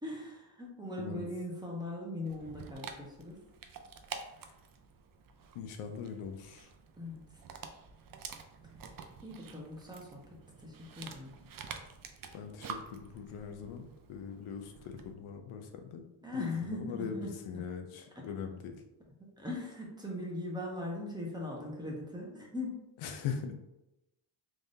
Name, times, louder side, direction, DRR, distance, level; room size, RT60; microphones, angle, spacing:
voice 1, 0.0-3.4 4.4-4.5 7.0-7.4 9.2-10.2 10.6-11.3 16.2-17.3 18.1-18.2 19.4-22.8, left 2 dB, 10° right, -3 dB, 1.0 m, -40 dB
Dog, 2.3-15.1, right 6 dB, 45° right, 0.5 m, -49 dB
voice 2, 5.5-6.7 12.3-16.0 16.3-16.4 16.7-18.8 23.0-23.6, left 7 dB, 80° left, 5 dB, 0.7 m, -41 dB
3.6 x 3.3 x 2.7 m, 0.91 s
cardioid pair, 95°, 49 cm